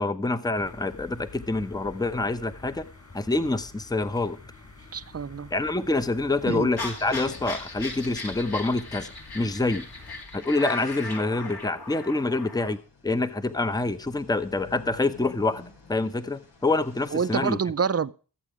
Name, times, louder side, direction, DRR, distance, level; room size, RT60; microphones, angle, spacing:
voice 1, 0.0-2.8 3.1-4.4 5.5-9.1 9.3-9.8 10.3-12.8 13.0-15.6 15.9-17.6, left 2 dB, 10° left, 0.8 m, -26 dB
sound 1, 0.6-10.2, left 3 dB, 45° left, 4.8 m, -47 dB
sound 2, 3.1-17.4, left 3 dB, 85° left, 3.1 m, -55 dB
voice 2, 4.9-5.5 6.4-6.7 17.1-18.1, right 6 dB, 35° right, 0.6 m, -27 dB
sound 3, 6.8-12.7, left 3 dB, 65° left, 2.6 m, -38 dB
14.0 x 8.2 x 5.0 m
wide cardioid pair, 75°, 41 cm